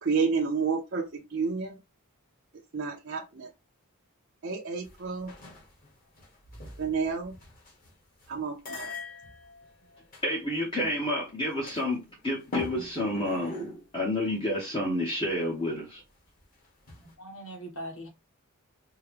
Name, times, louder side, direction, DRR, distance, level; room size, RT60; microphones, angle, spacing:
voice 1, 0.0-1.8 2.7-3.5 4.4-5.3 6.8-7.3 8.3-8.9, right 5 dB, 50° right, 0.5 m, -30 dB
sound 1, 4.8-5.9 6.1-7.9 8.2-8.3 8.6-10.2 10.8-11.0 11.5-12.2 12.5-13.8 14.2-14.3 16.9-17.1, left 2 dB, 40° left, 1.4 m, -41 dB
voice 2, 10.2-13.6 13.9-16.0, left 1 dB, 20° left, 0.7 m, -29 dB
voice 3, 17.0-18.1, right 1 dB, 65° left, 1.5 m, -41 dB
4.6 x 2.1 x 3.2 m
head